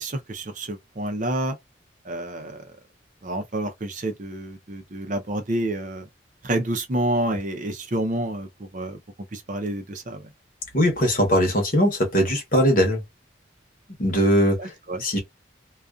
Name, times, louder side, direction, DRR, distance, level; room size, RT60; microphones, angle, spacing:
voice 1, 0.0-1.6 2.0-2.7 3.2-6.1 6.4-9.0 9.3-10.3 14.6-15.0, right 1 dB, 45° right, 0.6 m, -29 dB
voice 2, 10.7-13.0 14.0-14.7 15.0-15.2, equal, 45° left, 1.0 m, -20 dB
2.4 x 2.3 x 2.3 m
head